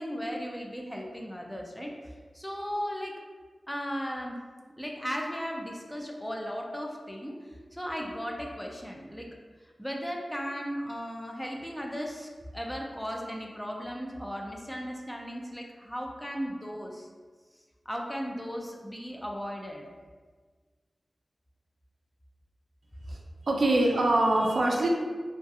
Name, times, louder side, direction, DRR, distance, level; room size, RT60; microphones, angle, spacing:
voice 1, 0.0-1.9 2.3-3.2 3.7-4.4 4.8-9.4 9.6-17.1 17.9-19.9, equal, 5° left, 0 dB, 0.3 m, -36 dB
voice 2, 23.5-24.9, right 2 dB, 80° right, 0 dB, 0.3 m, -23 dB
2.6 x 2.2 x 2.4 m, 1.5 s
wide cardioid pair, 85°, 0 cm